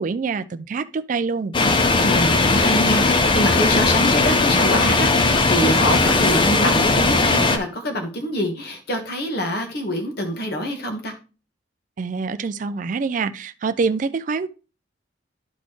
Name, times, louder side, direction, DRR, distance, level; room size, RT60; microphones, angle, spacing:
voice 1, 0.0-1.5 12.0-14.5, right 4 dB, 40° right, 0.3 m, -25 dB
sound 1, 1.5-7.6, left 3 dB, 25° left, 0.6 m, -18 dB
voice 2, 2.0-11.1, equal, 55° left, 1.4 m, -25 dB
11.5 x 4.1 x 3.1 m
head